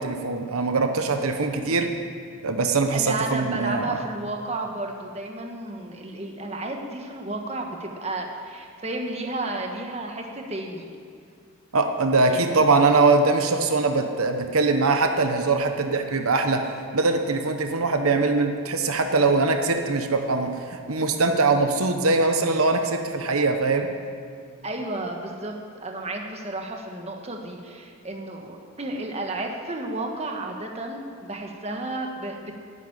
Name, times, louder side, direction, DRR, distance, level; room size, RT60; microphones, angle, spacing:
voice 1, 0.0-1.9 2.4-4.0 11.7-16.7 16.9-23.9, right 3 dB, 80° right, 6 dB, 1.0 m, -22 dB
voice 2, 2.9-10.9 12.3-12.5 24.6-32.5, right 2 dB, 30° right, 2 dB, 1.4 m, -32 dB
11.0 x 9.3 x 9.9 m, 2.2 s
head